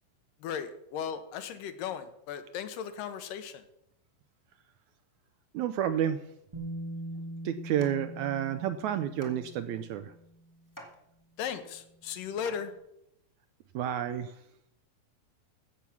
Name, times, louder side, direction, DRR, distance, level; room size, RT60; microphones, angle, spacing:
voice 1, 0.4-3.7 11.4-12.7, left 8 dB, 85° left, 9 dB, 2.7 m, -37 dB
voice 2, 5.5-6.3 7.4-10.1 13.7-14.4, right 10 dB, 80° right, 11 dB, 1.7 m, -30 dB
Bass guitar, 6.5-10.5 11.6-11.7, right 1 dB, 10° right, 1.4 m, -42 dB
sound 1, 6.9-13.3, equal, 10° left, 1.0 m, -54 dB
15.5 x 7.1 x 6.1 m, 0.80 s
omnidirectional pair, 3.8 m